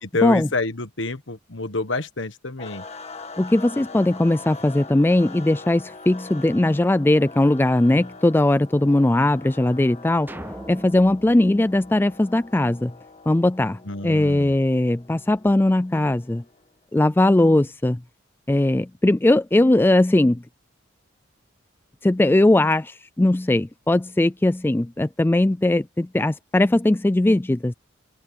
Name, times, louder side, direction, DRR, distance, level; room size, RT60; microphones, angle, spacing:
voice 1, 0.0-2.8 13.8-14.5, left 2 dB, 65° left, 1.5 m, -28 dB
sound 1, 2.6-16.7, left 3 dB, 30° left, 1.5 m, -43 dB
voice 2, 3.4-10.3 10.7-12.9 13.3-16.4 16.9-18.0 18.5-20.4 22.0-27.7, left 1 dB, 10° left, 0.3 m, -19 dB
sound 2, 10.3-12.8, right 1 dB, 10° right, 0.7 m, -41 dB
open air
head